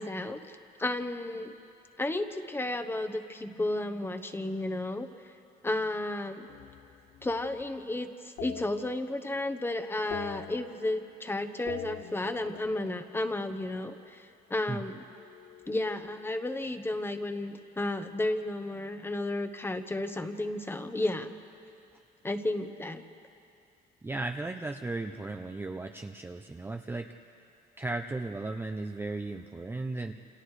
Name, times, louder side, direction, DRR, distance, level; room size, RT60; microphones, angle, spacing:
voice 1, 0.0-1.5 2.0-5.1 5.6-6.5 7.2-15.0 15.7-21.3 22.2-23.0, left 2 dB, 15° left, 8 dB, 1.1 m, -33 dB
sound 1, 6.5-7.8 8.4-9.5 9.8-11.2 11.5-13.9 15.1-16.8, left 13 dB, 70° left, 0.5 m, -46 dB
voice 2, 24.0-27.1 27.8-30.1, right 2 dB, 15° right, 4 dB, 0.6 m, -36 dB
29.0 x 28.0 x 3.3 m, 2.6 s
cardioid pair, 110°, 17 cm